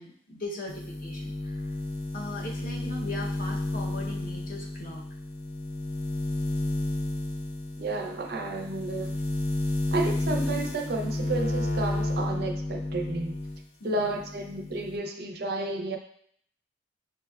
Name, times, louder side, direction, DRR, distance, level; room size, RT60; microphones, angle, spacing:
voice 1, 0.0-1.7 2.1-5.0 13.8-14.2, left 2 dB, 45° left, -1 dB, 0.7 m, -39 dB
sound 1, 0.7-13.6 14.0-15.0, left 2 dB, 80° left, 0.5 m, -32 dB
voice 2, 7.8-9.2 9.9-13.3 13.8-16.0, right 2 dB, 50° right, 3 dB, 0.4 m, -31 dB
6.1 x 2.1 x 2.2 m, 0.64 s
head